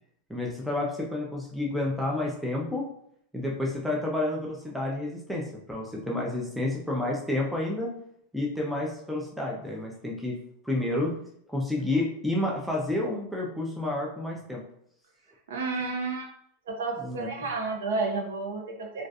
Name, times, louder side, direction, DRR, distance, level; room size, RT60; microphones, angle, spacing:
voice 1, 0.3-2.8 3.3-7.9 8.3-10.4 10.6-11.1 11.5-14.6 17.0-17.3, left 2 dB, ahead, -2 dB, 0.4 m, -30 dB
voice 2, 15.5-16.3 16.7-19.1, right 3 dB, 85° right, 1 dB, 0.6 m, -31 dB
2.3 x 2.2 x 2.6 m, 0.70 s
supercardioid pair, 125°, 0 cm